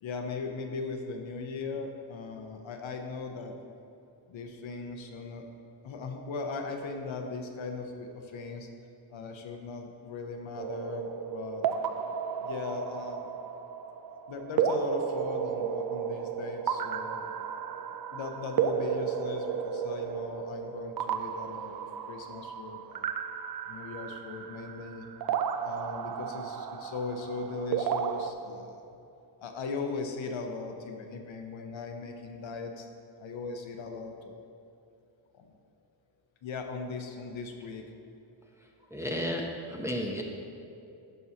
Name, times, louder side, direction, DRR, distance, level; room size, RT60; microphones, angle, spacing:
voice 1, 0.0-3.5 4.3-5.4 5.8-8.7 9.1-11.6 12.4-13.3 14.3-17.2 18.1-23.1 23.7-25.1 25.6-28.8 29.4-32.9 33.2-34.3 35.3-35.5 36.4-37.9, left 4 dB, 70° left, 4 dB, 0.9 m, -38 dB
sound 1, 10.6-28.3, right 7 dB, 50° right, 0.5 m, -33 dB
voice 2, 38.9-40.2, equal, 5° right, 0 dB, 0.6 m, -33 dB
11.0 x 5.4 x 2.8 m, 2.7 s
cardioid pair, 85°, 49 cm